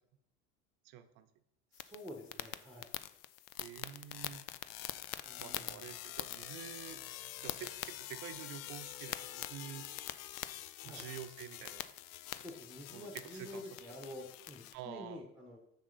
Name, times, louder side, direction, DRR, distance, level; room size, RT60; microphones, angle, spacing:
voice 1, 0.8-1.3 3.6-4.4 5.4-7.0 7.4-9.9 10.8-11.9 12.9-13.6 14.7-15.2, right 10 dB, 60° right, 10 dB, 0.8 m, -48 dB
sound 1, 1.7-14.8, left 14 dB, 55° left, 0.5 m, -45 dB
voice 2, 1.7-2.9 5.2-5.9 10.8-11.0 12.4-15.6, left 1 dB, ahead, 1 dB, 1.2 m, -49 dB
6.2 x 5.7 x 4.1 m, 0.81 s
hypercardioid pair, 80°, 39 cm